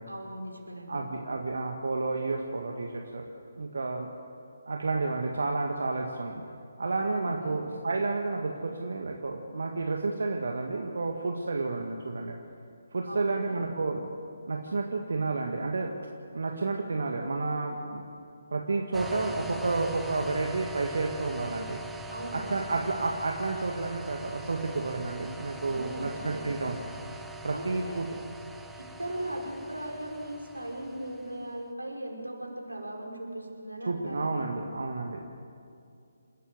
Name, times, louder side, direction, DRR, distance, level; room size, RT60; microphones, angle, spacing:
voice 1, 0.1-1.0 7.1-7.6 13.0-13.7 22.1-22.9 25.7-26.6 27.5-28.1 28.8-34.3, right 1 dB, 85° right, 0 dB, 5.5 m, -38 dB
voice 2, 0.9-3.3 3.6-4.1 4.7-6.4 6.8-12.4 12.9-14.1 14.5-15.9 16.3-18.0 18.5-21.8 22.3-26.8 27.4-28.1 33.9-35.2, right 3 dB, 60° right, 2 dB, 1.9 m, -31 dB
sound 1, 18.9-31.5, right 2 dB, 5° right, 0.9 m, -42 dB
28.5 x 13.5 x 8.0 m, 2.5 s
figure-of-eight pair, 145°, 0 cm